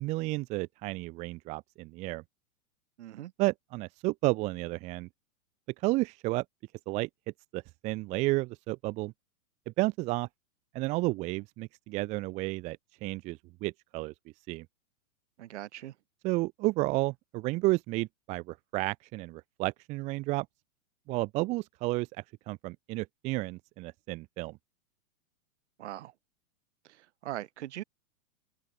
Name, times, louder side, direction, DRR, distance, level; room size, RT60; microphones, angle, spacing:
voice 1, 0.0-2.2 3.4-5.1 5.8-6.4 6.9-7.1 7.5-9.1 9.7-10.3 10.7-14.1 14.5-14.7 16.2-20.5 21.1-24.6, right 21 dB, 15° right, 0.9 m, -32 dB
voice 2, 3.0-3.3 15.4-15.9 25.8-26.1 26.8-27.8, right 13 dB, 50° right, 5.1 m, -41 dB
open air
hypercardioid pair, 170°, 43 cm